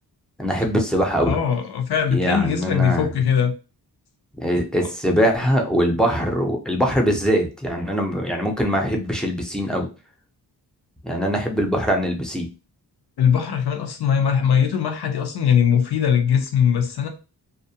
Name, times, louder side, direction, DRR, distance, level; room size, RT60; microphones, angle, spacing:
voice 1, 0.4-1.4 2.1-3.1 4.4-9.9 11.0-12.5, equal, ahead, 1 dB, 0.5 m, -22 dB
voice 2, 1.3-3.6 13.2-17.1, left 8 dB, 70° left, 6 dB, 0.6 m, -20 dB
2.4 x 2.1 x 2.7 m, 0.32 s
wide cardioid pair, 120°, 40 cm